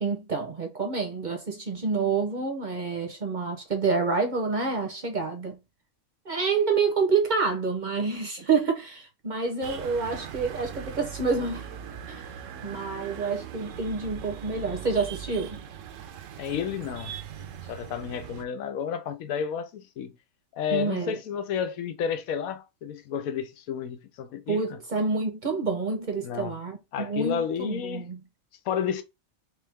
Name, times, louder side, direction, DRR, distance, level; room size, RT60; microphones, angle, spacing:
voice 1, 0.0-5.6 6.2-11.7 12.1-12.3 12.6-15.6 20.7-21.2 24.5-28.2, right 4 dB, 40° right, 0.7 m, -28 dB
sound 1, 9.6-18.4, right 9 dB, 70° right, 0.9 m, -40 dB
voice 2, 16.4-20.1 20.5-24.8 26.2-26.5 26.9-28.1 28.7-29.0, left 8 dB, 90° left, 1.1 m, -31 dB
3.3 x 3.2 x 3.4 m
omnidirectional pair, 1.4 m